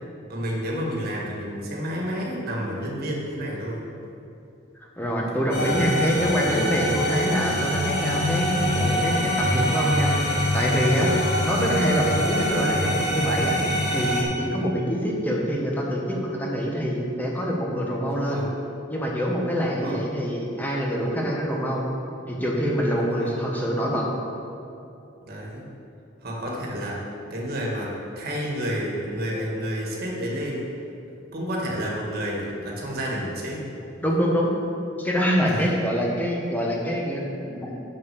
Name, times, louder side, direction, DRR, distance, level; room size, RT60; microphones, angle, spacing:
voice 1, 0.3-3.8 11.1-11.3 18.1-18.5 19.8-20.0 23.0-23.4 25.3-25.6 26.2-30.7 31.3-33.6 35.4-35.8, equal, 50° right, -3 dB, 1.7 m, -30 dB
voice 2, 5.0-11.1 11.4-13.6 13.9-18.4 18.9-21.8 22.3-24.1 34.0-34.5 35.0-37.7, equal, 10° left, -2 dB, 1.2 m, -25 dB
sound 1, 5.5-14.2, equal, 55° left, 1.9 m, -24 dB
6.7 x 6.4 x 7.0 m, 2.7 s
head